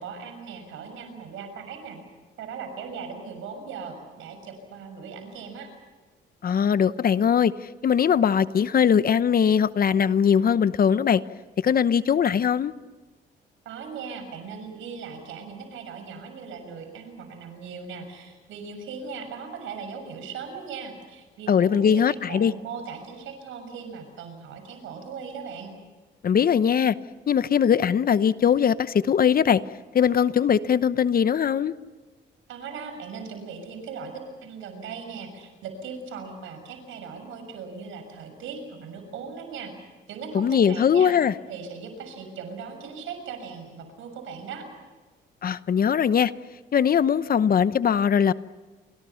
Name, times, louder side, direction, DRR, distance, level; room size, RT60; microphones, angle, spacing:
voice 1, 0.0-2.0 2.4-5.7 13.6-25.7 32.5-39.7 40.1-41.2 41.5-44.7, right 5 dB, 85° right, 7 dB, 6.4 m, -38 dB
voice 2, 6.4-11.2 11.6-12.7 21.5-22.5 26.2-27.0 27.3-29.6 29.9-31.7 40.3-41.3 45.4-46.3 46.7-48.3, left 8 dB, 50° left, 15 dB, 0.9 m, -21 dB
29.5 x 24.5 x 5.8 m, 1.3 s
cardioid pair, 90°, 20 cm